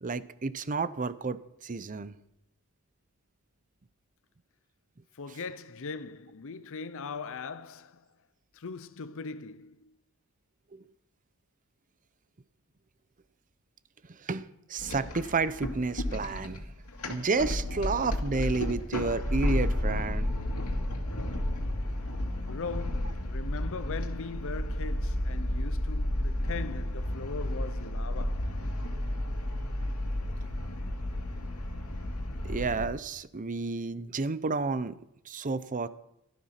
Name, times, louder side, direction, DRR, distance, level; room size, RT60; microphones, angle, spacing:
voice 1, 0.0-2.1 14.2-16.6 17.1-20.3 32.4-35.0 35.3-35.9, right 4 dB, 35° right, 0.7 m, -31 dB
voice 2, 5.1-8.1 8.5-9.9 22.4-28.7, left 4 dB, 65° left, 0.6 m, -40 dB
sound 1, 14.8-32.9, left 1 dB, 85° left, 2.3 m, -32 dB
17.0 x 12.5 x 5.8 m
head